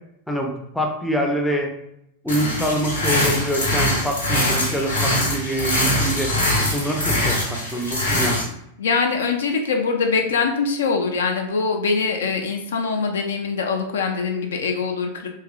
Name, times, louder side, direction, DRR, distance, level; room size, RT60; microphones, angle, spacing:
voice 1, 0.3-1.7 2.2-6.3 6.7-8.4, right 1 dB, ahead, 0 dB, 0.4 m, -25 dB
sound 1, 2.3-8.4, left 1 dB, 80° left, 0.9 m, -22 dB
voice 2, 8.8-15.3, left 4 dB, 65° left, 3 dB, 0.3 m, -23 dB
2.9 x 2.4 x 2.3 m, 0.78 s
figure-of-eight pair, 90°, 0 cm